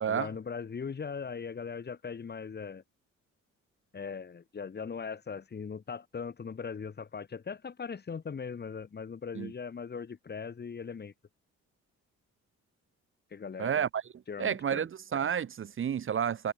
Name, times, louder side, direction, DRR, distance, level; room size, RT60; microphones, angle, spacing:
voice 1, 0.0-2.8 3.9-11.1 13.3-13.7 14.3-14.9, left 6 dB, 35° left, 1.5 m, -39 dB
voice 2, 13.6-14.0 14.4-16.5, right 8 dB, 45° right, 0.9 m, -30 dB
cardioid pair, 90°, 30 cm